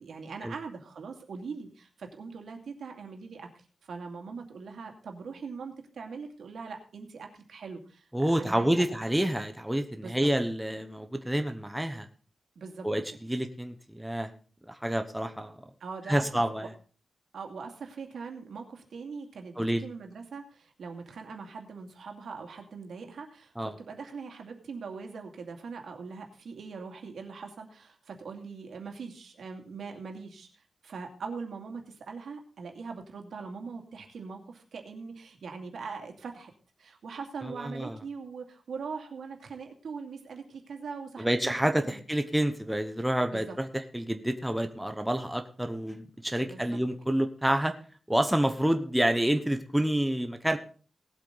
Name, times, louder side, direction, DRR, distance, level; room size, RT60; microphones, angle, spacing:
voice 1, 0.0-3.5 3.8-8.8 10.0-10.3 12.6-12.9 15.8-16.4 17.3-36.5 36.8-42.0 43.3-43.5 46.4-46.8, right 5 dB, 85° right, 3 dB, 2.5 m, -41 dB
voice 2, 8.1-12.1 12.8-14.3 14.7-15.6 16.1-16.7 19.6-19.8 23.6-23.7 37.4-38.0 41.2-47.7 48.1-50.6, right 1 dB, 5° right, 6 dB, 0.9 m, -28 dB
18.0 x 8.3 x 4.1 m, 0.39 s
wide cardioid pair, 165°, 0 cm